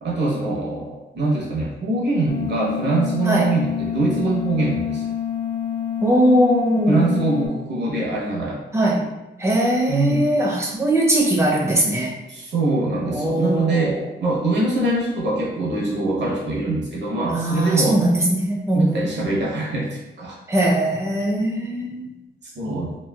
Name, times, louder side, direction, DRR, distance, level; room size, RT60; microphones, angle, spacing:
voice 1, 0.0-5.1 6.9-8.6 9.9-10.2 12.3-18.0 18.7-19.9 20.2-20.4 22.4-23.0, right 2 dB, 70° right, -4 dB, 0.9 m, -23 dB
sound 1, 2.3-7.5, left 9 dB, 55° left, 0.5 m, -27 dB
voice 2, 6.0-7.1 8.7-9.1 9.4-12.1 13.1-14.1 17.3-19.1 20.5-22.1, right 1 dB, 15° right, -2 dB, 0.5 m, -20 dB
3.1 x 2.6 x 2.2 m, 1.0 s
wide cardioid pair, 170°, 19 cm